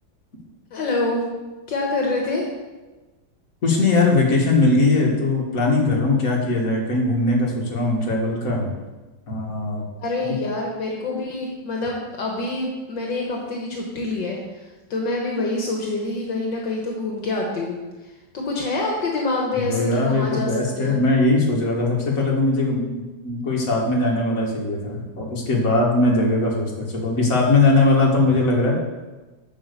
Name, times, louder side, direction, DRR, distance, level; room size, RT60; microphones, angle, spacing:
voice 1, 0.7-1.2 1.7-2.4 10.0-14.4 14.9-17.8 18.3-21.0, left 2 dB, 70° left, -1 dB, 2.0 m, -26 dB
voice 2, 3.6-8.7 9.3-9.8 10.3-10.4 19.6-22.8 23.2-28.8, left 2 dB, 45° left, -2 dB, 2.2 m, -20 dB
8.7 x 5.9 x 6.8 m, 1.2 s
omnidirectional pair, 2.1 m